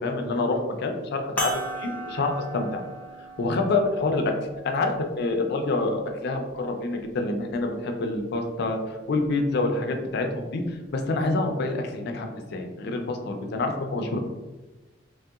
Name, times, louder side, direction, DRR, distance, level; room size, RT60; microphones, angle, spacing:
voice 1, 0.0-2.8 3.4-4.3 4.6-8.8 9.1-14.2, left 2 dB, 60° left, 4 dB, 0.4 m, -27 dB
sound 1, 1.4-6.2 7.0-7.1 9.2-9.3, right 1 dB, 10° left, 0.5 m, -37 dB
3.0 x 2.7 x 2.3 m, 1.2 s
head